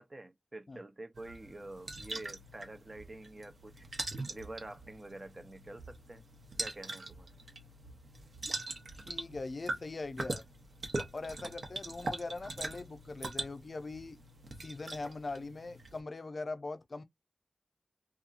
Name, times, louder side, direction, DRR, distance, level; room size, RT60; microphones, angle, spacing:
voice 1, 0.0-3.9 4.3-6.2 6.6-7.3, right 2 dB, 35° right, 0.5 m, -47 dB
sound 1, 1.1-16.0, right 2 dB, 75° right, 0.8 m, -42 dB
voice 2, 8.9-10.4 11.1-14.2 14.6-17.0, left 3 dB, 65° left, 0.4 m, -41 dB
2.8 x 2.3 x 2.4 m
wide cardioid pair, 60°, 0 cm